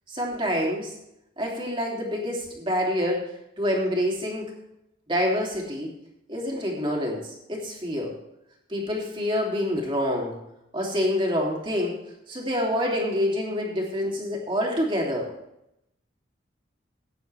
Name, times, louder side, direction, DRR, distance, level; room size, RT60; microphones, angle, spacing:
voice 1, 0.1-0.9 1.4-3.2 3.6-4.5 5.1-5.9 6.3-8.1 8.7-10.4 10.7-11.9 12.3-15.3, equal, 25° right, -1 dB, 2.8 m, -27 dB
16.0 x 9.6 x 3.4 m, 0.82 s
head